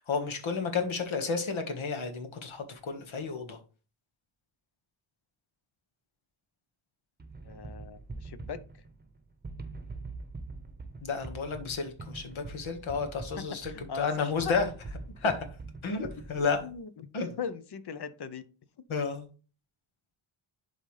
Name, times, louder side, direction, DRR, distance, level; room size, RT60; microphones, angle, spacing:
voice 1, 0.0-3.6 11.0-14.7 15.2-15.3 15.8-16.6 17.1-17.4 18.9-19.3, left 5 dB, 70° left, 5 dB, 1.7 m, -31 dB
sound 1, 7.2-16.8, right 3 dB, 20° right, 0.9 m, -44 dB
voice 2, 7.4-8.6 13.6-14.6 15.2-15.3 16.4-17.1 17.4-18.5, left 6 dB, 55° left, 13 dB, 0.8 m, -40 dB
11.0 x 4.0 x 3.3 m, 0.36 s
wide cardioid pair, 120°, 49 cm